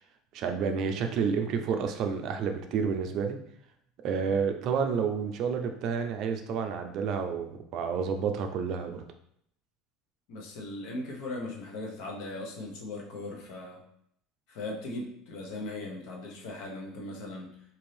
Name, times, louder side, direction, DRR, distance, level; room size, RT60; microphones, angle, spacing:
voice 1, 0.3-3.4 4.0-9.0, right 6 dB, 55° right, 6 dB, 0.5 m, -30 dB
voice 2, 10.3-13.8 14.5-17.5, left 2 dB, 75° left, 0 dB, 0.9 m, -38 dB
2.9 x 2.6 x 3.2 m, 0.71 s
supercardioid pair, 115°, 0 cm